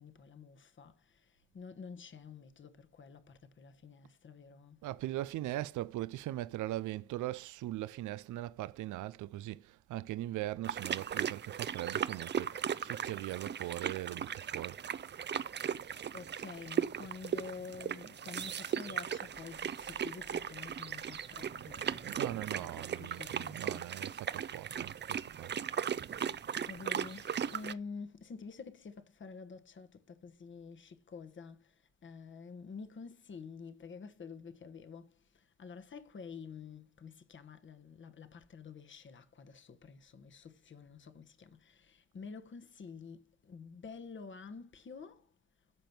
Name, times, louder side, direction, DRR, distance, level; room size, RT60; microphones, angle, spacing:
voice 1, 0.0-4.8 16.1-23.9 26.7-45.3, left 5 dB, 40° left, 1.3 m, -49 dB
voice 2, 4.8-14.8 22.0-25.5, right 15 dB, 75° right, 0.6 m, -40 dB
sound 1, 10.6-27.7, right 8 dB, 35° right, 0.6 m, -37 dB
sound 2, 19.0-23.9, left 5 dB, 80° left, 3.3 m, -64 dB
13.5 x 5.2 x 6.0 m
cardioid pair, 90°, 30 cm